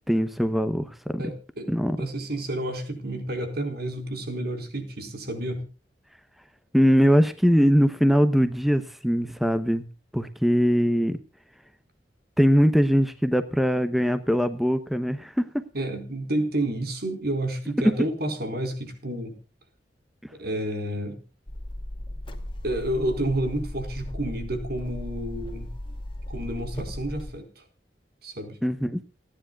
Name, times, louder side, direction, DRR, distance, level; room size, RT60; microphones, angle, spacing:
voice 1, 0.1-1.2 1.7-2.0 6.7-9.8 10.1-11.2 12.4-15.5 28.6-29.0, equal, ahead, 10 dB, 0.8 m, -21 dB
voice 2, 1.2-1.7 2.0-5.6 15.7-19.4 20.3-21.2 22.6-25.7 26.3-27.6 28.2-28.6, right 1 dB, 60° right, 6 dB, 4.5 m, -30 dB
sound 1, 21.5-27.3, left 1 dB, 30° left, 2.4 m, -36 dB
29.0 x 10.0 x 2.3 m, 0.33 s
head